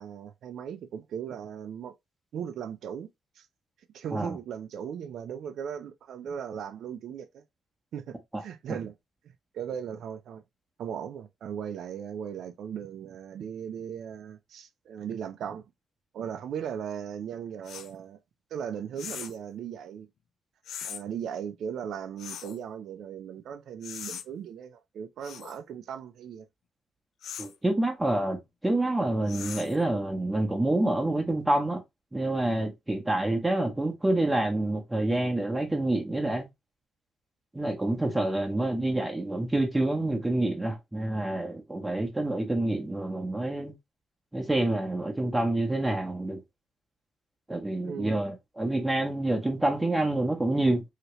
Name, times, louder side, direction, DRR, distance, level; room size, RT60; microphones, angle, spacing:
voice 1, 0.0-1.9 2.3-3.1 3.4-3.5 3.9-7.4 7.9-8.9 9.5-10.4 10.8-15.6 16.1-18.2 18.5-20.1 20.8-26.5 47.8-48.2, right 8 dB, 70° right, 0.4 m, -37 dB
sound 1, 17.7-17.9 19.0-19.4 20.7-21.0 22.2-22.6 23.8-24.3 25.2-25.6 27.2-27.6 29.3-29.8, left 9 dB, 70° left, 0.3 m, -40 dB
voice 2, 27.4-31.8 32.1-36.5 37.5-43.7 44.3-46.4 47.5-50.8, right 1 dB, 15° right, 0.9 m, -27 dB
2.9 x 2.8 x 3.0 m
cardioid pair, 90°, 0 cm